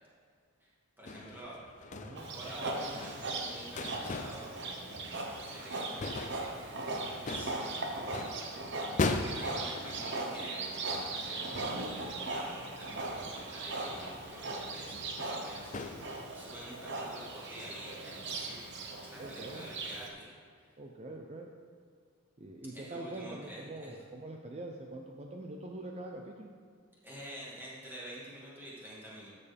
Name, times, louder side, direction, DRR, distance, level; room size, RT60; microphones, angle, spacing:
voice 1, 1.0-1.6 2.3-6.9 7.3-8.2 9.3-11.4 11.7-18.6 19.0-20.3 20.6-20.7 22.7-24.0 27.0-29.3, right 1 dB, 10° right, -7 dB, 2.2 m, -48 dB
sound 1, 1.1-16.6, left 3 dB, 35° left, 0.5 m, -41 dB
voice 2, 1.9-2.3 19.2-19.7 20.8-21.5 22.4-26.5, right 2 dB, 30° right, 2 dB, 0.5 m, -44 dB
Livestock farm animals working animals, 2.2-20.1, right 2 dB, 55° right, 1.0 m, -39 dB
12.5 x 6.8 x 3.5 m, 2.1 s
head